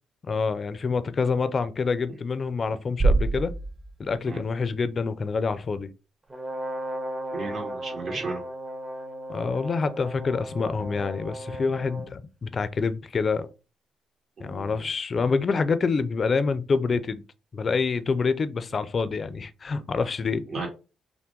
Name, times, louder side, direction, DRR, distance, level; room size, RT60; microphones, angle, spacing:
voice 1, 0.3-3.5 4.0-5.9 9.3-13.5 14.4-17.2 17.5-20.4, left 4 dB, 40° left, 0.5 m, -27 dB
sound 1, 3.0-4.8, right 3 dB, 40° right, 1.8 m, -25 dB
Brass instrument, 6.3-12.1, right 1 dB, 20° right, 0.9 m, -36 dB
voice 2, 7.3-8.4 14.4-14.9 20.5-20.7, right 3 dB, 55° right, 2.1 m, -34 dB
5.6 x 2.2 x 3.7 m
cardioid pair, 90°, 0 cm